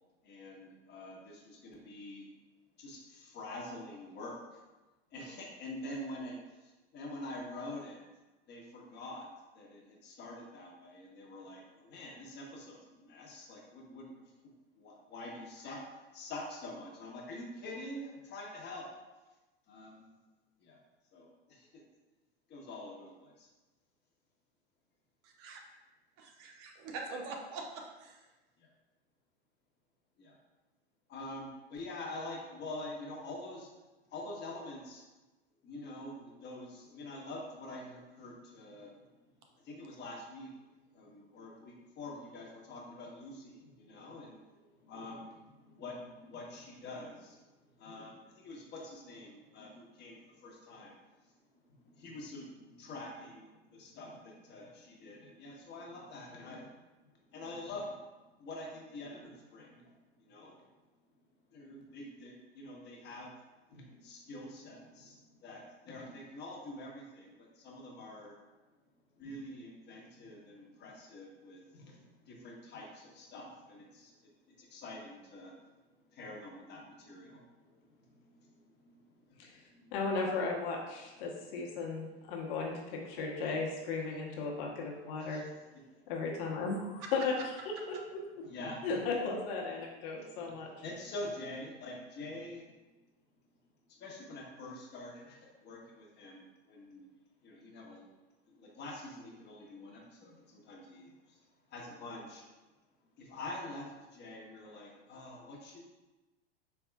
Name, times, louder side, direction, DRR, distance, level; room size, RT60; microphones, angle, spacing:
voice 1, 0.2-2.2 2.8-4.4 5.1-8.0 8.5-9.3 9.5-14.1 14.7-15.8 16.1-18.8 19.7-20.1 20.6-20.8 21.1-21.7 22.5-23.5 30.2-30.4 31.1-33.7 34.1-35.0 35.6-38.9 39.6-40.5 40.9-44.4 44.8-47.4 47.8-50.9 51.8-56.7 57.3-58.0 58.4-59.9 60.2-60.6 61.5-63.3 63.7-68.3 69.2-74.1 74.5-75.6 76.1-78.5 78.8-79.9 85.2-85.5 85.9-86.0 88.5-89.0 90.3-92.7 94.0-97.0 97.4-98.0 98.5-101.4 101.7-102.5 103.2-105.8, left 1 dB, 30° left, -2 dB, 1.1 m, -46 dB
voice 2, 25.2-25.6 26.2-28.2 87.0-87.1, right 3 dB, 45° right, 2 dB, 0.7 m, -44 dB
voice 3, 79.9-85.4 86.1-88.2 88.8-90.7, left 4 dB, 60° left, -2 dB, 1.0 m, -36 dB
4.5 x 3.4 x 2.3 m, 1.1 s
hypercardioid pair, 100°, 32 cm